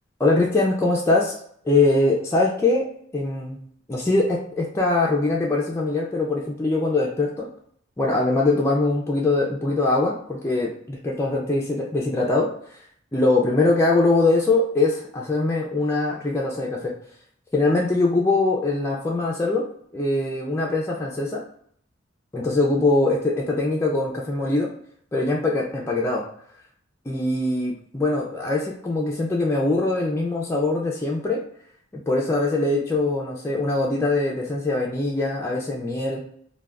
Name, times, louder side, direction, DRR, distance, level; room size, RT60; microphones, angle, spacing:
voice 1, 0.2-1.4 1.6-2.9 3.1-3.6 3.9-7.5 8.0-12.5 13.1-16.9 17.5-19.6 19.9-21.4 22.3-24.7 25.1-26.2 27.1-31.4 32.1-36.2, left 2 dB, 15° left, -3 dB, 0.4 m, -22 dB
2.2 x 2.2 x 3.5 m, 0.64 s
head